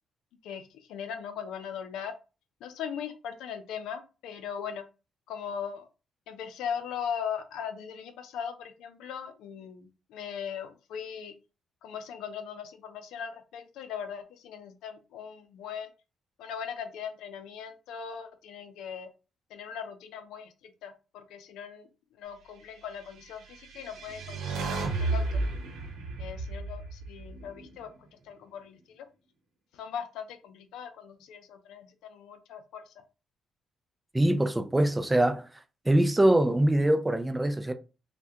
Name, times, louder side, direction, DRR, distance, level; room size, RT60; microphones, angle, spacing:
voice 1, 0.4-2.1 2.6-4.8 5.3-5.9 6.3-11.3 11.8-15.9 16.4-19.1 19.5-20.5 20.8-21.9 22.2-25.4 26.2-27.9 28.2-29.1 29.7-32.9, left 7 dB, 90° left, 0.5 m, -39 dB
sound 1, 23.5-27.8, right 3 dB, 80° right, 0.9 m, -33 dB
voice 2, 34.1-35.5 35.9-37.7, right 1 dB, 15° right, 0.4 m, -23 dB
3.2 x 2.2 x 2.8 m
cardioid pair, 90°, 0 cm